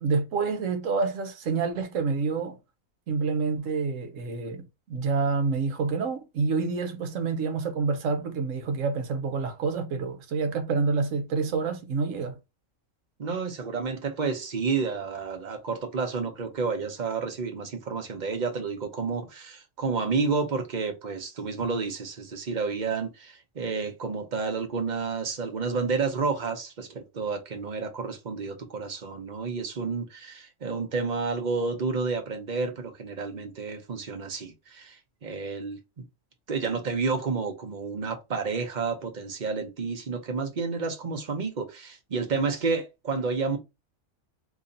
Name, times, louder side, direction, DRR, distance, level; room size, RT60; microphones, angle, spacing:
voice 1, 0.0-2.6 3.1-12.4, right 4 dB, 70° right, 1.1 m, -28 dB
voice 2, 13.2-35.8 36.5-43.6, right 4 dB, 40° right, 0.8 m, -30 dB
2.9 x 2.7 x 3.8 m
omnidirectional pair, 1.5 m